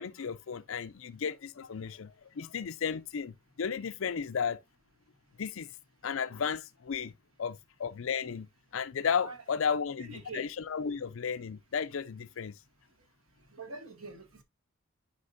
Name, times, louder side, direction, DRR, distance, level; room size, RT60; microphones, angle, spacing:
voice 1, 0.0-4.6 5.4-5.7 6.0-7.1 7.4-8.5 8.7-12.5, left 6 dB, 70° left, 0.5 m, -34 dB
voice 2, 10.1-10.5 13.5-14.4, right 3 dB, 90° right, 1.9 m, -44 dB
9.8 x 5.1 x 2.6 m
head